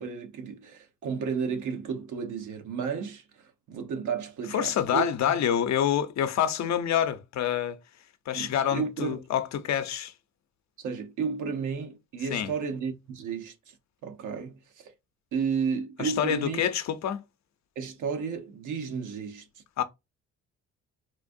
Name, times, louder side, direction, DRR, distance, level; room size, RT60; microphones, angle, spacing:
voice 1, 0.0-5.1 8.3-9.2 10.8-13.5 14.0-14.9 15.3-16.6 17.8-19.5, right 6 dB, 80° right, 1.1 m, -32 dB
voice 2, 4.5-7.8 8.3-10.1 12.3-12.5 16.0-17.2 19.8-19.9, left 9 dB, 65° left, 0.8 m, -27 dB
4.2 x 2.5 x 2.5 m
cardioid pair, 90°, 30 cm